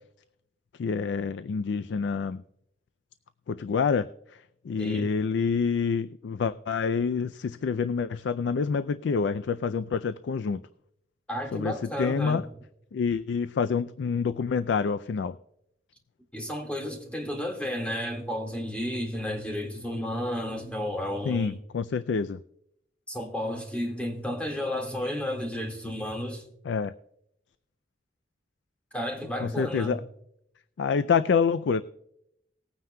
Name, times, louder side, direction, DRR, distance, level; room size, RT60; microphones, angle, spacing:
voice 1, 0.8-2.4 3.5-4.1 4.6-10.6 11.5-11.7 12.0-12.4 12.9-15.4 21.2-22.4 26.7-26.9 29.4-30.0 30.8-31.8, left 5 dB, 80° left, 0.4 m, -27 dB
voice 2, 4.8-5.1 11.3-12.5 16.3-21.6 23.1-26.4 28.9-30.1, left 1 dB, 5° left, 1.7 m, -32 dB
19.5 x 9.3 x 2.2 m
head